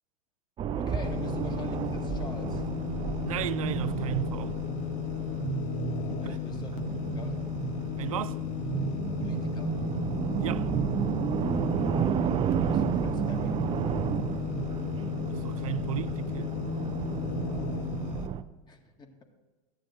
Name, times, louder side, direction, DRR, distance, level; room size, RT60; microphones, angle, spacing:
sound 1, 0.6-18.4, right 9 dB, 30° right, 0.6 m, -32 dB
voice 1, 0.8-2.7 6.1-7.5 9.2-9.8 12.1-13.6 18.7-19.3, left 4 dB, 25° left, 1.8 m, -46 dB
sound 2, 1.0-18.3, left 14 dB, 45° left, 1.0 m, -35 dB
voice 2, 3.2-4.6 6.1-6.4 8.0-8.4 10.4-10.7 15.3-16.5, right 13 dB, 90° right, 0.4 m, -34 dB
14.0 x 10.0 x 3.9 m
hypercardioid pair, 105°, 17 cm